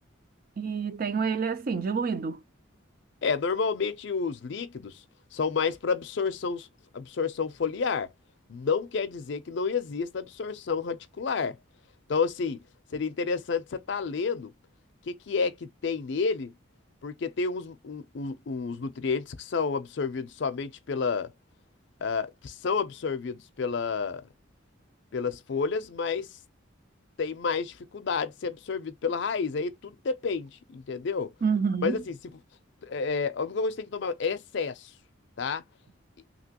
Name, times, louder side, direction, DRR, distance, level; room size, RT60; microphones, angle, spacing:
voice 1, 0.6-2.4 31.4-32.0, right 5 dB, 45° right, 0.4 m, -28 dB
voice 2, 3.2-5.0 5.3-6.7 6.9-8.1 8.5-11.6 12.1-12.6 12.9-14.5 15.1-16.5 17.0-21.3 22.0-24.3 25.1-26.3 27.2-31.3 31.8-32.4 32.8-34.9 35.4-35.6, left 5 dB, 60° left, 0.4 m, -30 dB
2.9 x 2.8 x 2.8 m
head